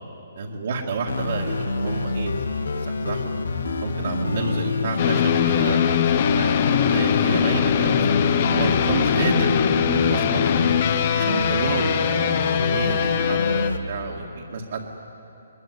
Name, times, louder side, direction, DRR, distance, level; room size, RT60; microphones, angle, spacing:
voice 1, 0.4-2.3 2.9-3.6 3.8-5.8 6.3-10.5 11.1-15.0, right 3 dB, 55° right, -3 dB, 2.1 m, -29 dB
sound 1, 1.1-13.8, left 3 dB, 75° left, 1.5 m, -27 dB
sound 2, 5.0-13.7, left 8 dB, 35° left, 1.0 m, -22 dB
22.0 x 21.0 x 9.5 m, 2.9 s
hypercardioid pair, 170°, 0 cm